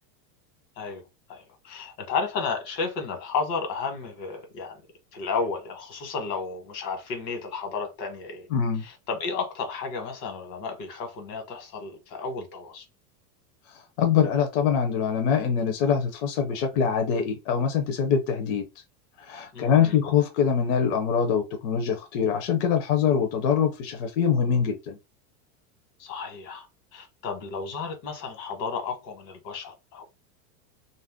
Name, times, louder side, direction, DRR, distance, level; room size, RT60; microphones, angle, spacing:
voice 1, 1.3-4.8 5.1-8.5 8.8-12.8 19.5-20.0 26.0-26.7 26.9-30.0, left 5 dB, 85° left, 1.4 m, -32 dB
voice 2, 8.5-8.8 13.7-18.6 19.2-25.0, left 7 dB, 50° left, 0.7 m, -24 dB
2.6 x 2.1 x 3.5 m
supercardioid pair, 145°, 48 cm